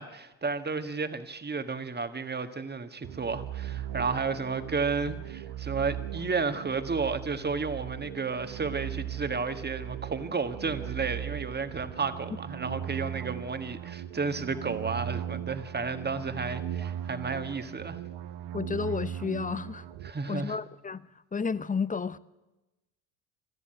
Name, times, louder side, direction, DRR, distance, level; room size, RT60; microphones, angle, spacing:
voice 1, 0.0-18.0 20.0-20.6, right 4 dB, 25° right, 1.7 m, -32 dB
sound 1, 3.0-20.1, right 11 dB, 65° right, 1.1 m, -38 dB
voice 2, 18.5-19.9 20.3-21.1 21.3-22.2, left 5 dB, 20° left, 0.8 m, -31 dB
22.0 x 13.5 x 9.0 m
hypercardioid pair, 55°, 43 cm